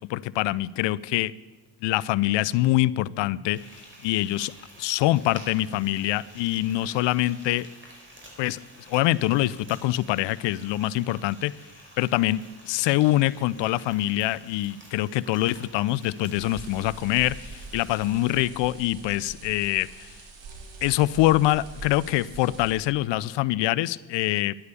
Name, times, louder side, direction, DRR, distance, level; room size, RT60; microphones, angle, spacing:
voice 1, 0.1-1.3 1.8-3.6 4.0-4.5 4.8-7.7 8.4-8.6 8.9-11.5 12.0-20.1 20.8-24.5, left 16 dB, 60° left, 20 dB, 0.6 m, -24 dB
Frying (food), 3.5-18.4, right 1 dB, 25° right, 4.7 m, -50 dB
sound 1, 16.3-22.7, right 3 dB, 60° right, 2.9 m, -43 dB
11.0 x 9.6 x 6.8 m, 1.2 s
hypercardioid pair, 50°, 50 cm